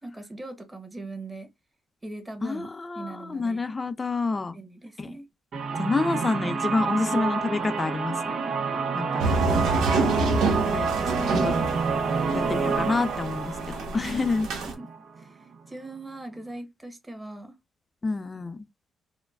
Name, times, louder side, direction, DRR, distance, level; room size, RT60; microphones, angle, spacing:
voice 1, 0.0-1.5 2.0-2.7 2.9-3.7 4.5-5.3 11.0-12.1 12.7-12.8 14.6-14.9 15.2-15.4 15.7-17.5, right 2 dB, 15° right, 1.1 m, -39 dB
voice 2, 2.4-4.6 5.0-5.1 5.8-8.1 8.9-9.2 10.7-10.9 11.3-11.5 12.3-13.5 13.9-14.5 18.0-18.7, left 3 dB, 25° left, 0.5 m, -28 dB
sound 1, 5.5-15.2, right 5 dB, 60° right, 0.7 m, -28 dB
sound 2, 9.2-14.7, right 3 dB, 80° right, 1.1 m, -28 dB
4.4 x 2.2 x 2.4 m
cardioid pair, 90°, 0 cm